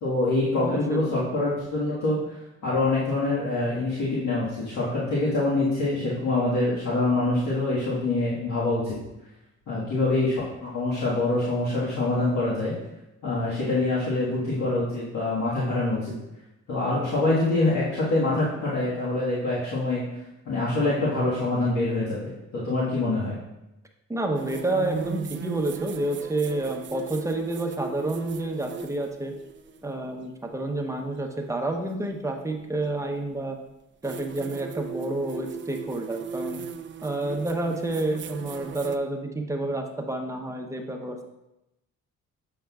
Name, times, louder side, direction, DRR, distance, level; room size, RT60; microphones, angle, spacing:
voice 1, 0.0-2.2 2.6-9.0 9.7-12.7 13.2-16.1 16.7-20.0 20.4-23.4, left 2 dB, 70° left, -8 dB, 1.6 m, -25 dB
voice 2, 0.6-1.2 24.1-29.3 29.8-33.6 34.0-36.6 37.0-41.2, right 2 dB, 10° right, 3 dB, 0.8 m, -29 dB
sound 1, 24.4-29.9 31.9-32.0 34.0-39.0, right 6 dB, 40° right, 0.4 m, -38 dB
7.6 x 5.7 x 2.4 m, 0.92 s
cardioid pair, 90°, 30 cm